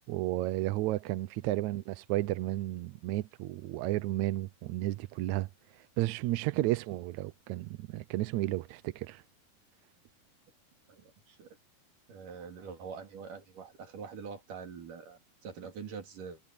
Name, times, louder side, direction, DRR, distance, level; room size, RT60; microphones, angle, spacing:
voice 1, 0.1-5.5 6.0-9.2, right 16 dB, 90° right, 1.6 m, -32 dB
voice 2, 10.9-11.6 12.1-16.4, right 6 dB, 60° right, 4.7 m, -45 dB
omnidirectional pair, 4.4 m